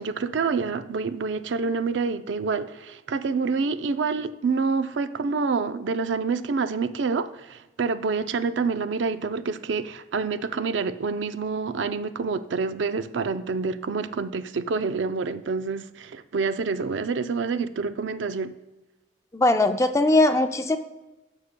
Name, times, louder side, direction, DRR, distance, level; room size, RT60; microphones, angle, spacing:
voice 1, 0.0-18.5, right 4 dB, 85° right, 0.4 m, -27 dB
voice 2, 19.3-20.8, left 2 dB, 15° left, 0.4 m, -20 dB
14.5 x 6.5 x 2.2 m
head